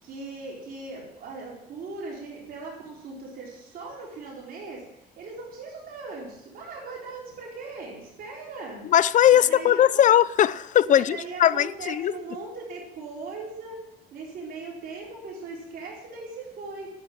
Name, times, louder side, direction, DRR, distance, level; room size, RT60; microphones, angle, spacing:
voice 1, 0.0-8.8 9.3-10.0 10.9-13.8 14.1-16.9, right 3 dB, 60° right, 4.3 m, -39 dB
voice 2, 8.9-12.1, left 11 dB, 50° left, 0.6 m, -19 dB
11.0 x 7.9 x 9.9 m
cardioid pair, 110°, 17 cm